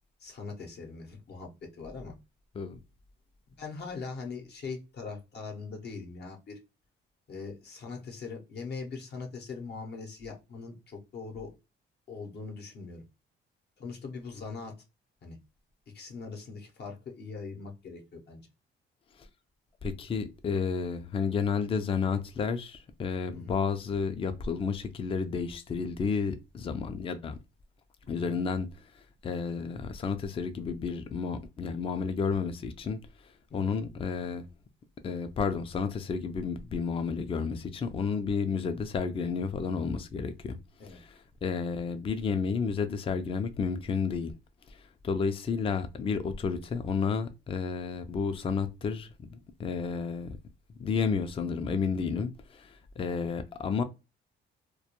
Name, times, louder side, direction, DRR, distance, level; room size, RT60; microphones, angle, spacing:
voice 1, 0.2-2.2 3.5-6.6 7.3-11.5 12.1-13.0 13.8-14.7 15.2-15.4 15.9-18.4 23.3-23.5 28.1-28.4 33.5-33.7 40.8-41.0, left 4 dB, 55° left, 0.7 m, -41 dB
voice 2, 19.8-27.4 28.1-33.0 33.5-34.5 35.0-40.6 40.9-44.3 44.7-50.4 50.8-53.8, left 5 dB, 30° left, 0.3 m, -31 dB
2.2 x 2.1 x 2.8 m
cardioid pair, 90°, 20 cm